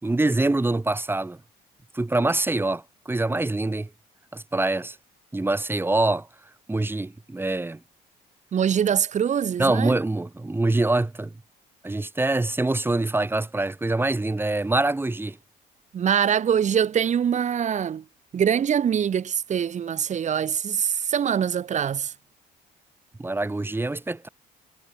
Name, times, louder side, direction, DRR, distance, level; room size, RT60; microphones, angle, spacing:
voice 1, 0.0-1.4 1.9-3.9 4.3-5.0 5.3-6.3 6.7-7.8 9.6-11.3 11.8-15.4 23.2-24.3, right 2 dB, 15° right, 6.1 m, -24 dB
voice 2, 8.5-9.9 15.9-18.0 18.3-22.1, right 8 dB, 45° right, 3.1 m, -23 dB
cardioid pair, 110°, 17 cm